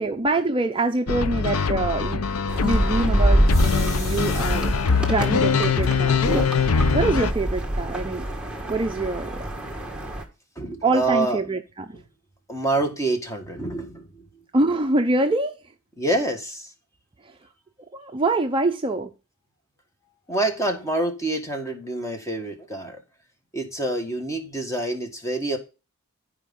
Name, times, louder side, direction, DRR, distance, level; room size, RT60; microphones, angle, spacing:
voice 1, 0.0-2.2 2.6-6.2 6.9-8.2 8.7-9.4 10.8-11.6 11.9-12.0 14.5-15.6 17.9-19.1, right 2 dB, 25° right, 0.5 m, -24 dB
sound 1, 1.1-7.3, left 5 dB, 75° left, 0.6 m, -23 dB
sound 2, 2.5-10.2, right 1 dB, 5° right, 1.4 m, -25 dB
sound 3, 3.5-5.0 5.8-5.9 6.3-6.4 6.7-7.3, left 1 dB, 30° left, 3.7 m, -39 dB
voice 2, 10.5-11.4 11.9-12.0 12.5-14.3 16.0-16.7 20.3-23.0 23.5-25.6, right 2 dB, 15° left, 1.6 m, -27 dB
14.0 x 5.0 x 3.7 m
head